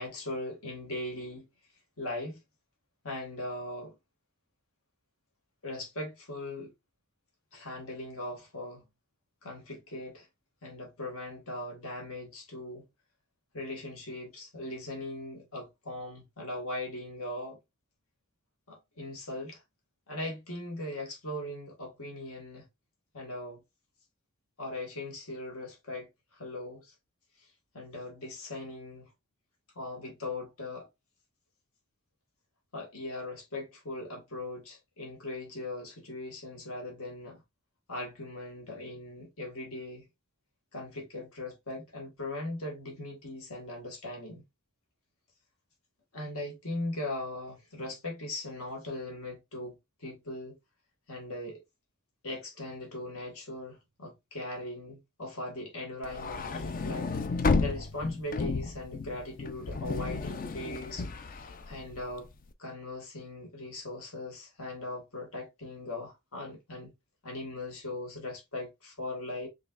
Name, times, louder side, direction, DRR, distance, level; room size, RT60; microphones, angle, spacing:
voice 1, 0.0-1.5 2.0-2.4 3.0-3.9 5.6-6.7 7.5-8.8 9.4-10.3 10.6-12.9 13.5-17.6 18.7-19.6 20.1-22.7 23.1-23.6 24.6-26.9 27.7-29.1 29.8-30.9 32.7-37.4 37.9-40.1 40.7-44.4 46.1-50.6 51.1-51.6 52.2-57.1 57.6-62.3 62.6-66.9 67.2-69.5, left 2 dB, 70° left, 1.8 m, -39 dB
sound 1, 56.0-62.4, left 3 dB, 40° left, 0.5 m, -32 dB
5.2 x 3.3 x 2.4 m
head